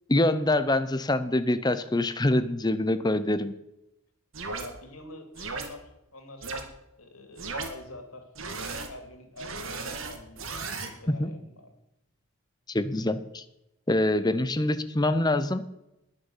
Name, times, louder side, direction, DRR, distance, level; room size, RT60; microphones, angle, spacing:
voice 1, 0.1-3.5 11.1-11.3 12.7-13.4 13.9-15.7, left 1 dB, 20° left, 13 dB, 0.7 m, -25 dB
sound 1, 4.3-4.7 5.3-5.7 6.4-6.6 7.4-7.7 8.3-8.9 9.4-10.9, right 3 dB, 65° right, 2.2 m, -35 dB
voice 2, 4.6-6.7 7.0-8.3 8.9-11.7, left 1 dB, 75° left, 6 dB, 2.9 m, -46 dB
20.5 x 6.8 x 7.3 m, 0.90 s
head